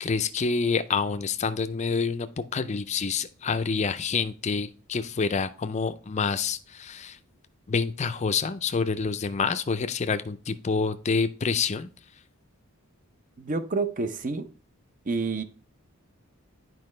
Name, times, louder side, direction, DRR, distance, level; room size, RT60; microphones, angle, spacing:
voice 1, 0.0-2.3 2.5-7.2 7.7-11.9, left 5 dB, 30° left, 0.4 m, -27 dB
voice 2, 13.4-14.5 15.1-15.4, right 3 dB, 35° right, 0.6 m, -28 dB
9.4 x 4.7 x 3.2 m
head